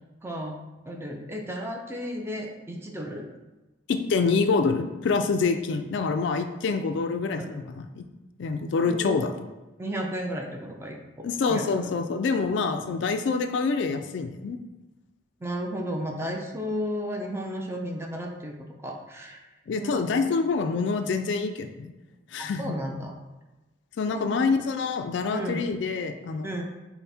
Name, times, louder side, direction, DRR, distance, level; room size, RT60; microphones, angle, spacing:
voice 1, 0.2-0.6 0.9-3.3 7.4-7.5 8.8-9.2 9.8-11.9 15.4-18.5 18.8-19.4 19.8-19.9 22.4-23.1 24.1-24.2 25.3-25.7 26.4-26.6, equal, 15° right, 1 dB, 0.4 m, -33 dB
voice 2, 3.9-8.0 8.4-9.3 11.2-14.6 19.7-21.9 22.3-22.7 24.0-26.5, left 4 dB, 65° left, 7 dB, 0.3 m, -26 dB
5.4 x 2.1 x 4.2 m, 1.1 s
head